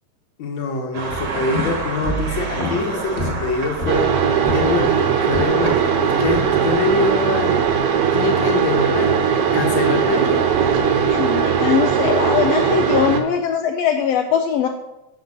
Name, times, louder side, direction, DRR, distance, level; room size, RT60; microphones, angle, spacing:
voice 1, 0.4-4.1 4.5-7.6 8.1-9.1 9.5-10.5, left 3 dB, 50° left, 3 dB, 1.6 m, -24 dB
sound 1, 0.9-11.0, right 3 dB, 50° right, 1.5 m, -32 dB
sound 2, 1.1-5.8 6.2-6.8, equal, 15° left, 1.3 m, -29 dB
sound 3, 3.9-13.2, right 7 dB, 75° right, 1.4 m, -19 dB
voice 2, 11.1-14.7, left 8 dB, 80° left, 4 dB, 1.4 m, -20 dB
8.4 x 6.0 x 5.5 m, 0.91 s
omnidirectional pair, 3.5 m